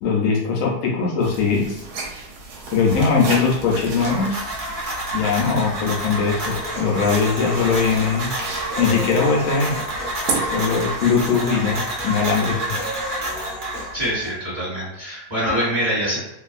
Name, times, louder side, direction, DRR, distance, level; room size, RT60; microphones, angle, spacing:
voice 1, 0.0-1.8 2.7-4.5 5.1-8.3 8.8-9.8 10.5-12.7, left 5 dB, 75° left, -2 dB, 0.7 m, -20 dB
sound 1, 1.2-11.2, right 3 dB, 70° right, 1.0 m, -34 dB
sound 2, 3.7-14.1, right 1 dB, 55° right, 0.5 m, -29 dB
Human voice, 6.3-14.3, equal, ahead, 0.8 m, -34 dB
voice 2, 13.9-16.2, equal, 25° right, -10 dB, 1.1 m, -24 dB
2.7 x 2.4 x 2.4 m, 0.88 s
omnidirectional pair, 1.9 m